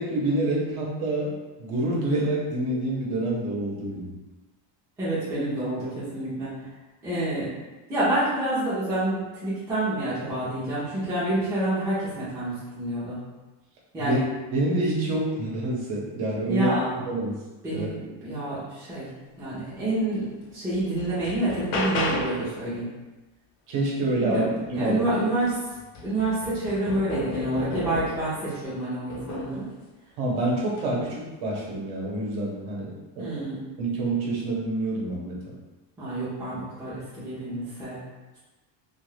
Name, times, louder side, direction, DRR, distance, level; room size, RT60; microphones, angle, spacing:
voice 1, 0.0-4.1 14.0-14.2 14.5-16.7 17.1-17.4 17.7-17.9 23.7-25.2 30.2-33.3 33.8-35.4, right 1 dB, 65° right, -3 dB, 0.9 m, -27 dB
voice 2, 5.0-6.6 7.0-7.5 7.9-13.2 13.9-14.2 16.5-17.0 17.6-19.1 19.4-22.9 24.2-24.5 24.7-25.6 26.0-29.7 31.0-31.1 33.2-33.6 36.0-38.0, right 1 dB, 5° right, -11 dB, 0.4 m, -28 dB
sound 1, 20.1-20.2 20.7-22.5 24.9-25.0 25.4-28.4 29.1-29.6 30.7-30.9, left 2 dB, 50° left, 0.5 m, -32 dB
2.4 x 2.3 x 3.1 m, 1.1 s
cardioid pair, 175°, 49 cm